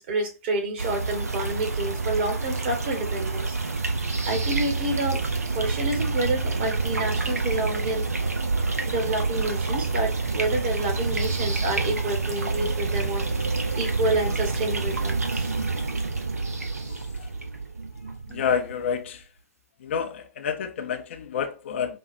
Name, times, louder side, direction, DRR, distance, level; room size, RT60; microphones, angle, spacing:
voice 1, 0.0-3.5 4.3-8.1 8.9-13.3 13.7-15.5, right 2 dB, 40° right, 1.3 m, -29 dB
sound 1, 0.8-19.0, right 3 dB, 75° right, 0.8 m, -28 dB
voice 2, 18.3-19.2 19.8-22.0, left 7 dB, 50° left, 0.5 m, -29 dB
5.0 x 2.4 x 2.6 m
figure-of-eight pair, 115°, 8 cm